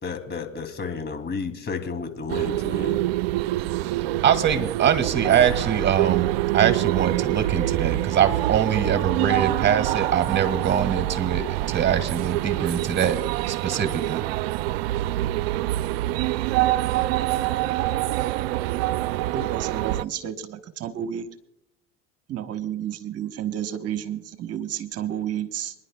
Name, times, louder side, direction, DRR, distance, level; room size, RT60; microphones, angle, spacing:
voice 1, 0.0-3.0, left 5 dB, 35° left, 7 dB, 2.6 m, -32 dB
sound 1, 2.3-20.0, right 16 dB, 85° right, 0.5 m, -25 dB
voice 2, 4.2-13.2 13.5-14.2, right 8 dB, 40° right, 10 dB, 1.8 m, -23 dB
voice 3, 19.3-21.3 22.3-25.7, right 10 dB, 55° right, 8 dB, 1.1 m, -31 dB
27.0 x 11.0 x 2.2 m, 0.76 s
hypercardioid pair, 75°, 30 cm